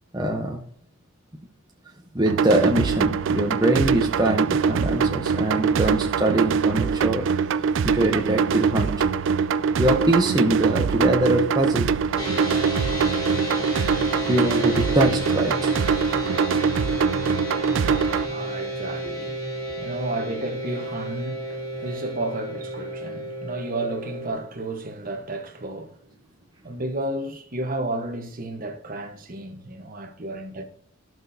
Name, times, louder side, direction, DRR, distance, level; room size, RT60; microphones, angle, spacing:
voice 1, 0.1-0.6 2.1-7.3 7.8-9.1 9.8-11.9 12.9-13.2 14.3-15.7 19.0-19.1, right 1 dB, 20° right, 0.7 m, -23 dB
sound 1, 2.3-18.3, right 6 dB, 60° right, 0.3 m, -23 dB
sound 2, 12.2-24.3, right 1 dB, 20° left, 4.2 m, -31 dB
voice 2, 17.7-26.0 26.6-30.6, right 2 dB, 40° right, 1.0 m, -32 dB
13.5 x 6.0 x 2.7 m
head